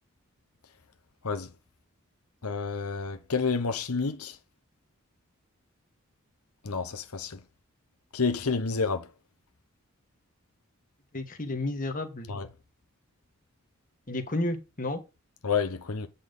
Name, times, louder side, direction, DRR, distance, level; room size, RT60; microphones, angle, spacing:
voice 1, 2.4-4.4 6.6-7.4 8.1-9.1 12.3-12.5 15.4-16.1, left 5 dB, 85° left, 1.0 m, -29 dB
voice 2, 11.1-12.3 14.1-15.0, left 2 dB, 35° left, 1.5 m, -32 dB
8.6 x 5.6 x 3.9 m
head